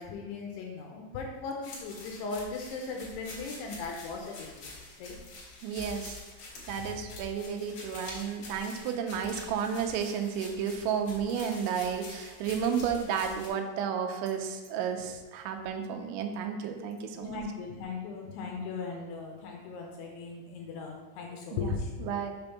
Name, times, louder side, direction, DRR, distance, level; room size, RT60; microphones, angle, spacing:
voice 1, 0.0-4.7 5.0-5.2 17.2-22.2, left 4 dB, 80° left, 1 dB, 2.6 m, -38 dB
sound 1, 1.6-13.5, left 2 dB, 55° left, 2.1 m, -46 dB
voice 2, 5.6-6.2 6.7-17.4 21.5-22.3, right 7 dB, 85° right, 5 dB, 3.0 m, -32 dB
6.9 x 3.5 x 5.6 m, 1.3 s
omnidirectional pair, 5.3 m